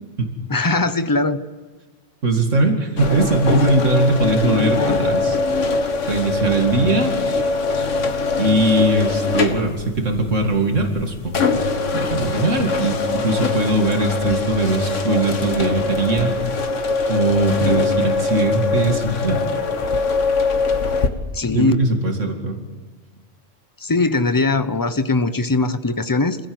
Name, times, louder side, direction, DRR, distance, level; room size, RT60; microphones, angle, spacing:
voice 1, 0.5-1.4 21.3-21.7 23.8-26.4, left 3 dB, 20° left, 11 dB, 0.9 m, -20 dB
voice 2, 2.2-5.4 6.1-7.1 8.4-11.6 11.9-16.4 17.1-19.5 21.5-22.6, right 2 dB, 85° right, 3 dB, 2.7 m, -20 dB
sound 1, 3.0-21.1, left 3 dB, 80° left, 1.8 m, -22 dB
26.5 x 16.0 x 7.9 m, 1.3 s
omnidirectional pair, 1.2 m